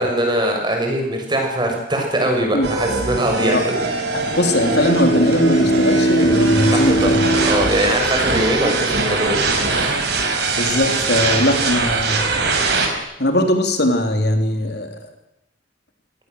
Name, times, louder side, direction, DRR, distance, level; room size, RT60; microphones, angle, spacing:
voice 1, 0.0-3.7 6.7-7.1 7.5-9.4 9.7-10.0, right 1 dB, 25° right, 2 dB, 6.4 m, -21 dB
sound 1, 2.6-12.9, right 3 dB, 65° right, 5.7 m, -22 dB
voice 2, 4.1-7.2 10.6-12.5 13.2-14.9, left 1 dB, 65° left, 5 dB, 3.4 m, -20 dB
Bowed string instrument, 4.2-8.5, right 1 dB, 85° left, 3.9 m, -20 dB
26.0 x 18.0 x 7.9 m, 0.87 s
head